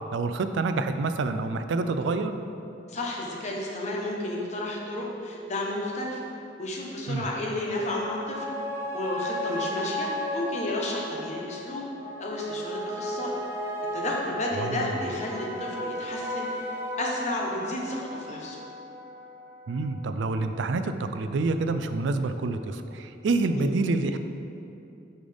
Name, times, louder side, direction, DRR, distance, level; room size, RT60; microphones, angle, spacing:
voice 1, 0.1-2.4 7.1-7.3 14.6-15.0 19.7-24.2, right 3 dB, 70° right, 9 dB, 0.4 m, -27 dB
voice 2, 2.9-6.3 6.6-8.5 8.9-11.9 12.2-13.3 13.9-16.6 17.0-18.6 23.5-23.6, left 1 dB, 40° left, -2 dB, 1.0 m, -32 dB
sound 1, 7.7-20.5 20.9-21.0, equal, 15° right, 0.6 m, -35 dB
8.8 x 5.2 x 3.4 m, 2.7 s
head